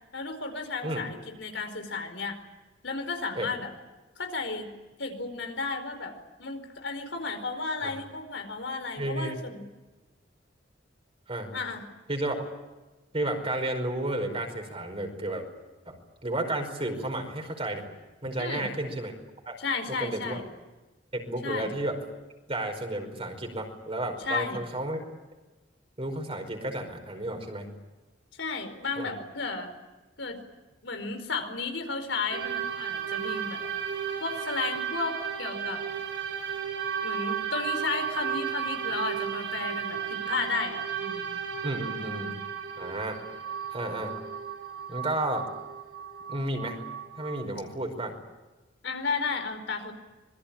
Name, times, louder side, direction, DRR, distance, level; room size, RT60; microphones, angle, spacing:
voice 1, 0.1-2.4 2.8-3.7 4.2-4.7 5.0-6.1 6.4-9.6 11.5-11.8 18.4-18.7 19.6-20.4 21.4-21.7 24.2-24.6 28.4-29.7 30.2-30.4 30.8-33.6 34.2-35.8 37.0-41.3 48.8-49.9, left 4 dB, 85° left, 6 dB, 4.7 m, -33 dB
voice 2, 9.0-9.4 11.3-11.5 12.1-12.4 13.1-15.4 15.8-17.9 18.2-19.1 19.4-19.6 19.9-20.4 21.1-22.0 22.5-25.0 26.0-27.7 29.0-29.1 41.6-42.4 42.8-43.2 43.7-44.2 44.9-45.5 46.3-46.8 47.2-48.2, right 1 dB, 30° right, 5 dB, 5.0 m, -32 dB
sound 1, 32.3-47.5, right 8 dB, 85° right, 7.1 m, -34 dB
25.5 x 22.0 x 8.8 m, 1.2 s
head